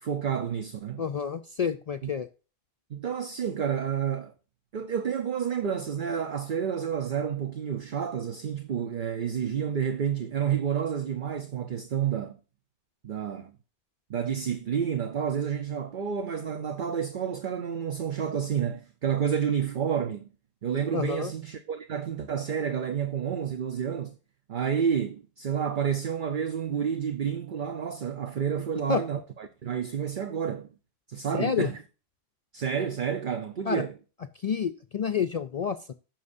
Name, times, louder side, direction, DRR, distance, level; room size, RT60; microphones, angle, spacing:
voice 1, 0.0-1.0 2.0-2.1 2.9-4.3 4.7-12.4 13.0-13.5 14.1-20.3 20.6-24.2 24.5-30.7 31.1-31.8 32.5-33.9, right 8 dB, 55° right, 0.8 m, -30 dB
voice 2, 1.0-2.3 20.9-21.3 28.9-29.0 31.3-31.7 33.7-33.8 34.4-35.9, left 6 dB, 50° left, 0.5 m, -29 dB
15.0 x 6.1 x 2.6 m
omnidirectional pair, 1.1 m